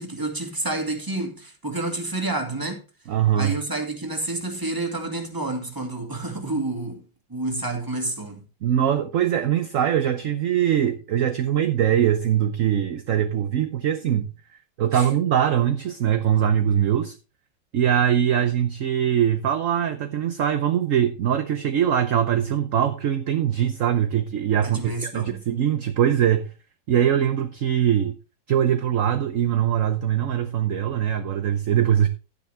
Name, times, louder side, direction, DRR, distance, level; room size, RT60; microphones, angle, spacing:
voice 1, 0.0-2.8 3.4-7.0 7.3-8.4 14.9-15.1 24.6-25.4, right 2 dB, 10° right, 2.1 m, -29 dB
voice 2, 3.1-3.5 8.6-14.3 14.8-17.2 17.7-26.5 26.9-28.1 28.5-32.1, right 9 dB, 60° right, 1.0 m, -22 dB
12.0 x 9.6 x 3.3 m
omnidirectional pair, 2.0 m